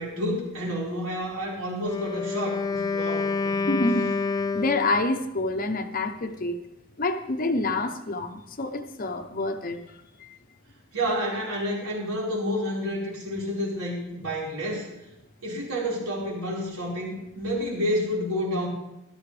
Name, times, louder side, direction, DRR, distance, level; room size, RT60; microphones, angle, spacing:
voice 1, 0.0-3.8 10.9-14.9 15.4-18.7, equal, 85° right, -5 dB, 4.8 m, -29 dB
Wind instrument woodwind instrument, 1.7-5.2, left 4 dB, 15° left, 0.3 m, -28 dB
voice 2, 3.7-4.1 4.5-6.6 7.0-9.8 10.2-10.4, left 2 dB, 40° left, 7 dB, 0.8 m, -27 dB
16.0 x 12.5 x 3.4 m, 0.89 s
head